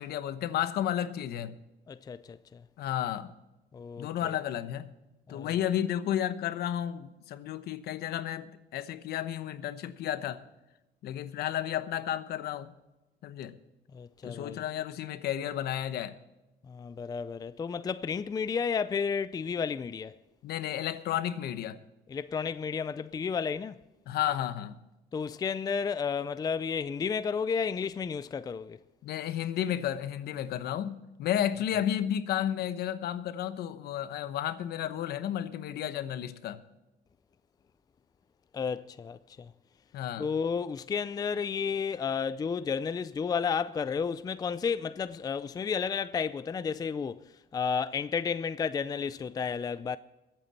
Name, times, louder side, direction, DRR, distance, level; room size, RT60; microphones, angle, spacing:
voice 1, 0.0-1.6 2.8-3.3 4.0-4.9 5.3-10.4 11.0-12.7 13.2-13.6 14.2-16.1 20.4-21.8 24.1-24.7 29.0-36.6 39.9-40.3, left 11 dB, 70° left, 1.0 m, -32 dB
voice 2, 1.9-2.6 3.7-4.3 5.3-5.6 13.9-14.6 16.7-20.1 22.1-23.8 25.1-28.8 38.5-39.5 40.2-47.2 47.5-50.0, left 6 dB, 20° left, 0.4 m, -32 dB
22.0 x 8.8 x 4.2 m
cardioid pair, 110°, 17 cm